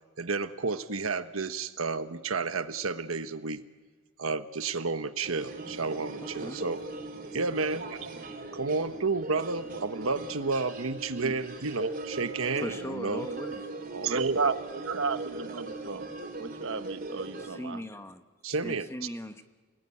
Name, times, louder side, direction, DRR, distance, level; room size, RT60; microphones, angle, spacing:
voice 1, 0.2-3.6 4.2-6.8 7.3-8.1 8.5-13.3 13.9-14.4 18.4-18.9, right 4 dB, 85° right, 10 dB, 1.3 m, -31 dB
sound 1, 5.2-17.5, right 2 dB, 40° right, 4.5 m, -39 dB
voice 2, 6.2-6.6 12.5-13.7 17.4-19.4, left 1 dB, 10° left, 8 dB, 1.1 m, -39 dB
voice 3, 14.1-16.1 16.4-17.8, right 4 dB, 65° right, 11 dB, 0.9 m, -33 dB
29.5 x 20.5 x 9.8 m, 1.4 s
head